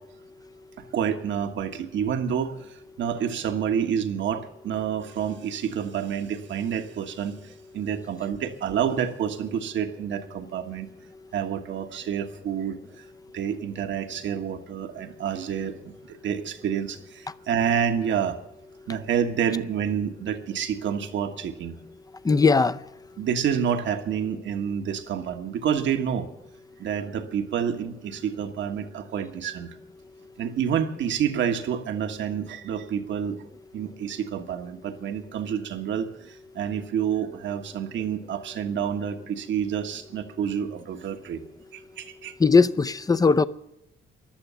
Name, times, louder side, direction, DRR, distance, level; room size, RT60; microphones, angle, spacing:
voice 1, 0.9-2.5 3.0-7.3 7.7-10.9 11.3-12.7 13.3-18.4 18.9-21.7 23.2-26.3 26.8-29.7 30.4-33.4 33.7-36.1 36.5-41.5 41.7-42.3, right 8 dB, 70° right, 1.4 m, -28 dB
voice 2, 22.2-22.8 42.4-43.5, left 4 dB, 20° left, 0.6 m, -19 dB
15.0 x 11.0 x 6.9 m
cardioid pair, 90°, 20 cm